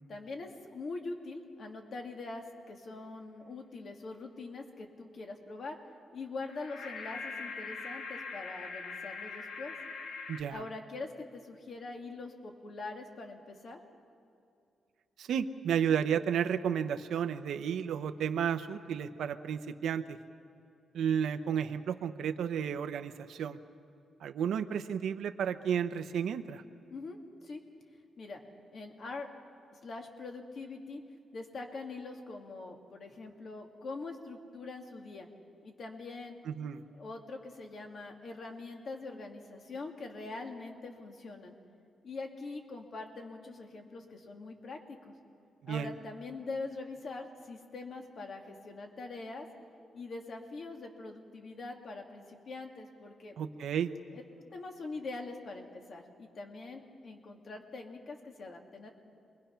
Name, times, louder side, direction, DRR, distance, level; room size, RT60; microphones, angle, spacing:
voice 1, 0.1-5.8 6.1-9.7 10.5-13.8 26.9-27.6 28.2-28.4 28.7-29.3 29.7-31.0 31.3-35.3 35.6-36.4 36.9-41.5 42.0-45.1 45.7-49.5 49.9-53.4 54.1-54.2 54.5-58.9, left 3 dB, 50° left, 3 dB, 2.2 m, -43 dB
sound 1, 6.4-10.4, left 4 dB, 85° left, 1.6 m, -42 dB
voice 2, 10.3-10.6 15.2-20.2 20.9-23.6 24.2-26.6 36.5-36.8 45.6-45.9 53.4-53.9, right 8 dB, 80° right, 8 dB, 0.8 m, -32 dB
28.0 x 22.5 x 5.8 m, 2.5 s
cardioid pair, 135°, 0 cm